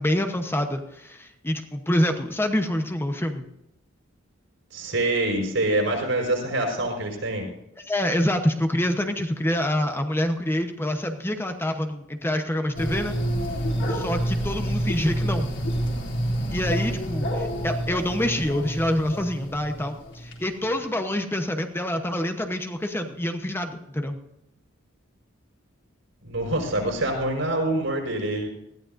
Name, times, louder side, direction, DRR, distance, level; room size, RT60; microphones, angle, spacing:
voice 1, 0.0-3.5 7.8-13.1 13.9-15.5 16.5-24.2, left 1 dB, 10° left, 5 dB, 0.9 m, -26 dB
voice 2, 4.7-7.5 26.2-28.5, right 1 dB, 75° right, 1 dB, 5.5 m, -25 dB
sound 1, 12.8-20.4, equal, 60° left, 4.1 m, -28 dB
20.0 x 14.5 x 2.6 m, 0.86 s
head